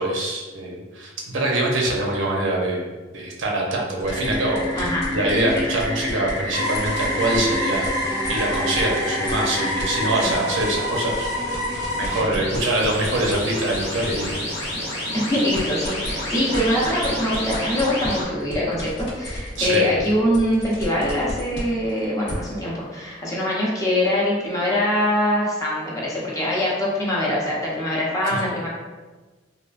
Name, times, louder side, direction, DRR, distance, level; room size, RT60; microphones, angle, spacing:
voice 1, 0.0-2.9 3.1-14.4 19.6-19.9, right 1 dB, 75° right, -1 dB, 0.6 m, -24 dB
sound 1, 4.0-10.3 11.8-18.2, left 1 dB, 85° left, 1.2 m, -29 dB
sound 2, 4.0-8.9 9.3-14.7 15.1-22.3, left 1 dB, 60° left, 0.9 m, -35 dB
voice 2, 4.7-5.1 5.5-5.6 10.2-10.3 15.1-28.7, left 1 dB, 20° left, -5 dB, 0.7 m, -23 dB
sound 3, 6.5-12.2, equal, 20° right, 0.7 m, -28 dB
3.4 x 2.4 x 2.4 m, 1.3 s
head